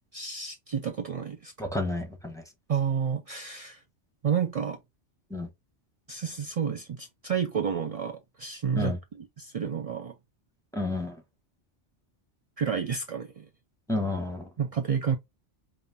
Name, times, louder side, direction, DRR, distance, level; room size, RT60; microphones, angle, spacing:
voice 1, 0.1-1.5 2.7-3.8 4.2-4.8 6.1-10.1 12.6-13.5 14.6-15.2, right 7 dB, 65° right, 0.3 m, -30 dB
voice 2, 1.6-2.4 5.3-5.5 8.8-9.0 10.7-11.2 13.9-14.5, left 2 dB, 5° left, 0.9 m, -30 dB
5.5 x 2.5 x 2.6 m
omnidirectional pair, 1.2 m